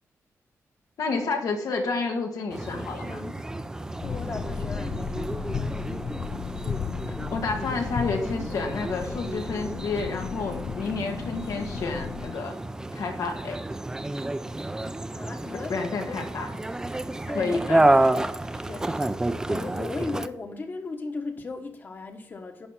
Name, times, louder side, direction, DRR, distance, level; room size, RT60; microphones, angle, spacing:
voice 1, 1.0-3.3 7.3-12.6 12.9-13.6 15.7-16.5 17.3-17.8, left 4 dB, 90° left, 2.0 m, -30 dB
sound 1, 2.5-20.3, right 2 dB, 10° right, 0.4 m, -30 dB
Plane Landing, 4.0-12.3, left 7 dB, 55° left, 0.4 m, -34 dB
voice 2, 4.0-5.6 15.1-15.8 16.1-16.3 17.3-22.7, left 3 dB, 35° left, 1.2 m, -37 dB
10.0 x 5.5 x 7.3 m
wide cardioid pair, 175°, 6 cm